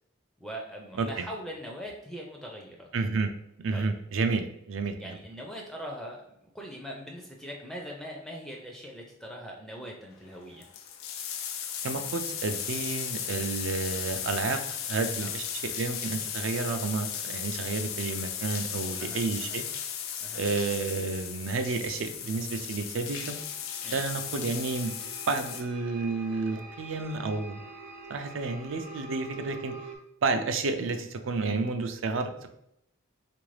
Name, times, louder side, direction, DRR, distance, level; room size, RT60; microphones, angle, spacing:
voice 1, 0.4-2.9 3.7-3.9 5.0-6.2 6.5-10.7 15.1-15.3 19.0-19.6 20.2-20.4 23.8-24.0 31.4-31.6, equal, ahead, 0 dB, 0.4 m, -41 dB
voice 2, 2.9-3.3 3.6-5.2 11.8-14.6 14.9-19.7 20.3-23.4 23.9-24.9 25.3-27.6 28.1-29.7 30.2-32.5, right 3 dB, 70° right, 8 dB, 0.4 m, -31 dB
sound 1, 10.2-10.3 10.5-25.6, left 8 dB, 85° left, 0.4 m, -36 dB
sound 2, 23.2-30.0, right 3 dB, 45° right, 0.8 m, -46 dB
3.7 x 2.5 x 3.2 m, 0.78 s
head